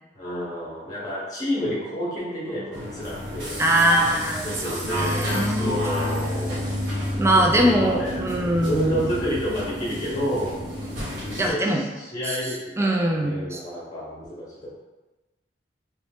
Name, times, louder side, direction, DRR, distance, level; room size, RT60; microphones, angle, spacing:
voice 1, 0.1-3.6 4.4-6.7 7.3-10.5 11.2-14.8, equal, 20° left, -7 dB, 0.9 m, -30 dB
sound 1, 2.7-11.5, equal, 80° right, 1.3 m, -29 dB
voice 2, 3.6-5.8 7.2-9.1 11.4-11.8 12.2-13.6, right 1 dB, 15° right, 1 dB, 0.4 m, -22 dB
3.0 x 2.7 x 3.5 m, 1.1 s
head